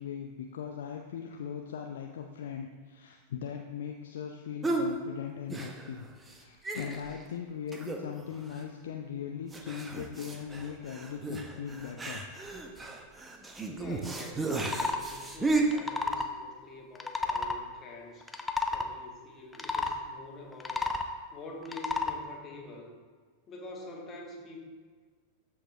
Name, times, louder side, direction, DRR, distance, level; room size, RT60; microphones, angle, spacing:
voice 1, 0.0-6.0 6.3-12.2, left 8 dB, 60° left, 3 dB, 0.6 m, -39 dB
sound 1, 4.6-4.9 5.5-6.0 6.3-6.4 6.6-7.2 7.7-8.2 8.5-8.6 9.5-15.6, right 3 dB, 15° right, 0.9 m, -34 dB
voice 2, 13.7-18.3 18.7-20.8 21.3-22.9 23.5-24.6, left 2 dB, 25° left, 0 dB, 1.8 m, -46 dB
sound 2, 14.5-15.0 15.6-16.3 17.0-17.6 18.2-18.9 19.5-20.0 20.5-21.1 21.7-22.2, left 3 dB, 10° left, 0.7 m, -31 dB
13.5 x 4.8 x 3.4 m, 1.5 s
figure-of-eight pair, 90°, 0 cm